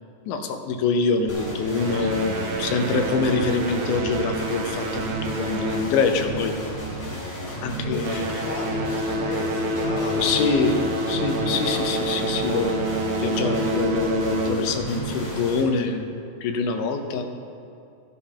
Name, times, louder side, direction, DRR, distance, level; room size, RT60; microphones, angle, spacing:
voice 1, 0.3-6.6 7.6-8.2 10.2-10.8 11.1-16.1 16.4-17.2, left 4 dB, 85° left, 6 dB, 2.3 m, -25 dB
sound 1, 1.3-15.6, right 1 dB, 25° left, 2.0 m, -33 dB
sound 2, 1.7-6.6 6.9-7.2 7.8-14.9, right 1 dB, 75° right, 1.1 m, -28 dB
voice 2, 7.9-10.4 11.1-11.9, left 3 dB, 60° left, 1 dB, 1.0 m, -36 dB
14.5 x 7.0 x 5.6 m, 2.5 s
omnidirectional pair, 3.5 m